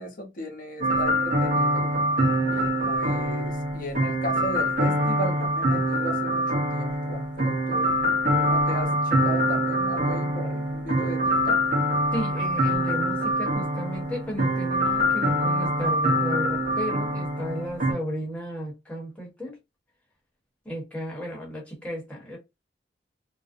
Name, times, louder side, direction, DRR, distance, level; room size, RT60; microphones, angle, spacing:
voice 1, 0.0-1.9 2.5-7.8 8.3-11.6, right 1 dB, 50° left, 0.8 m, -36 dB
sound 1, 0.8-17.9, equal, 45° right, 0.9 m, -24 dB
voice 2, 12.1-19.6 20.6-22.4, equal, 5° left, 1.0 m, -34 dB
2.5 x 2.0 x 2.5 m
head